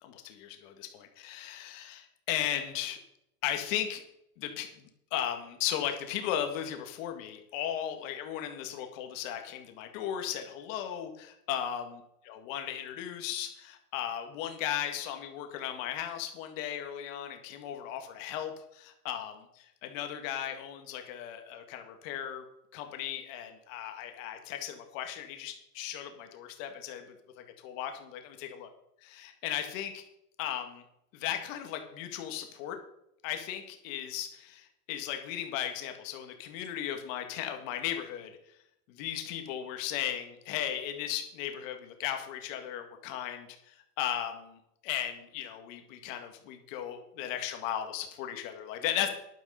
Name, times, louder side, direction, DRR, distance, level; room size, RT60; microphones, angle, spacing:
voice 1, 0.0-3.0 3.4-4.0 4.4-22.4 22.7-27.0 27.4-28.7 29.0-30.0 30.4-30.8 31.1-32.8 33.2-38.3 38.9-49.1, left 10 dB, 55° left, 5 dB, 1.9 m, -36 dB
10.5 x 9.7 x 5.1 m, 0.78 s
supercardioid pair, 160°, 47 cm